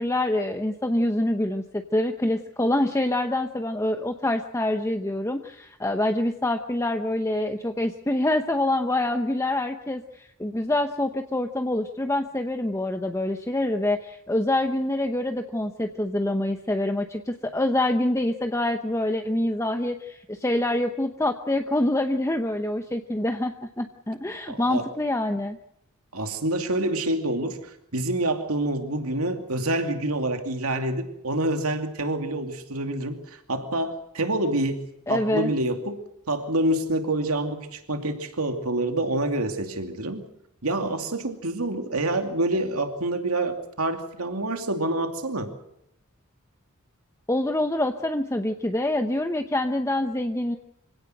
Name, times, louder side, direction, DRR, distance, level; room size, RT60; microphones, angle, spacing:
voice 1, 0.0-25.6 35.1-35.5 47.3-50.6, left 1 dB, 15° left, 6 dB, 0.9 m, -26 dB
voice 2, 24.5-24.9 26.1-36.0 36.3-40.3 40.6-45.5, right 1 dB, 80° right, 6 dB, 2.6 m, -27 dB
25.5 x 17.0 x 7.9 m, 0.77 s
head